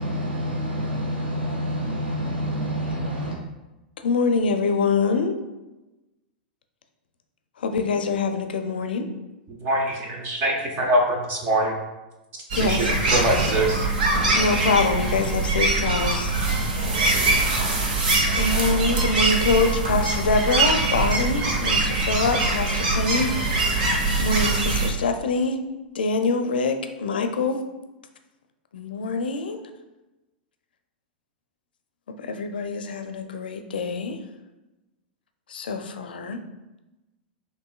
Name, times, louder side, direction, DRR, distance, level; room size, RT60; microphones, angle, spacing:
voice 1, 0.0-3.4, equal, 90° right, -3 dB, 1.0 m, -27 dB
voice 2, 4.0-5.4 7.6-9.1 12.5-12.9 14.4-16.3 18.3-23.3 24.2-25.6 26.0-27.6 28.7-29.6 32.2-34.2 35.5-36.4, left 4 dB, 75° left, 7 dB, 0.5 m, -24 dB
voice 3, 9.6-11.8 12.6-13.8, right 1 dB, 40° right, 1 dB, 0.7 m, -23 dB
sound 1, 12.5-24.9, right 3 dB, 65° right, 0.9 m, -23 dB
6.3 x 2.6 x 2.3 m, 1.0 s
figure-of-eight pair, 100°, 5 cm